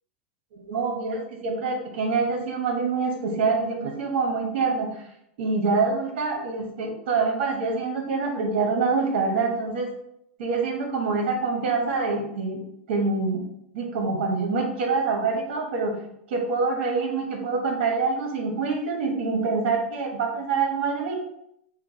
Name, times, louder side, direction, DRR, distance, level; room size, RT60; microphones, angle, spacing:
voice 1, 0.5-5.0 5.4-9.9 10.4-12.6 12.9-13.4 13.7-15.9 16.3-21.1, right 4 dB, 70° right, 0 dB, 1.0 m, -25 dB
5.8 x 2.1 x 3.9 m, 0.75 s
supercardioid pair, 160°, 6 cm